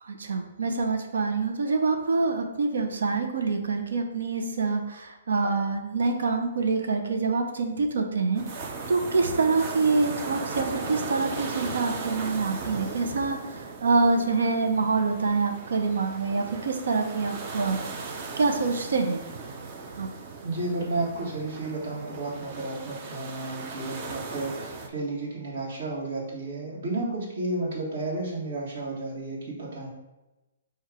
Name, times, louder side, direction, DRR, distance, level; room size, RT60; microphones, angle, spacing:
voice 1, 0.0-8.4 8.9-17.8 18.1-19.2 20.0-20.1, right 4 dB, 80° right, 4 dB, 0.6 m, -26 dB
sound 1, 8.3-24.9, right 4 dB, 30° right, 0.5 m, -37 dB
voice 2, 20.4-29.9, right 2 dB, 55° right, -5 dB, 1.5 m, -32 dB
4.6 x 2.3 x 4.8 m, 1.0 s
hypercardioid pair, 165°, 0 cm